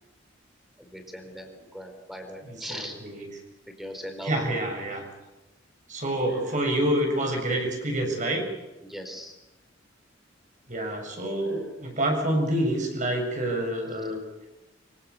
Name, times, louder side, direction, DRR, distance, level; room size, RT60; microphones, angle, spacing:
voice 1, 0.8-2.9 3.7-4.3 6.4-6.5 8.8-9.3 10.9-11.0 11.5-11.6 13.0-13.2 13.5-13.6, equal, ahead, 5 dB, 4.6 m, -40 dB
voice 2, 2.5-3.3 4.2-5.0 5.9-8.4 10.7-14.2, right 1 dB, 40° right, 2 dB, 7.3 m, -27 dB
25.0 x 25.0 x 7.1 m, 1.0 s
head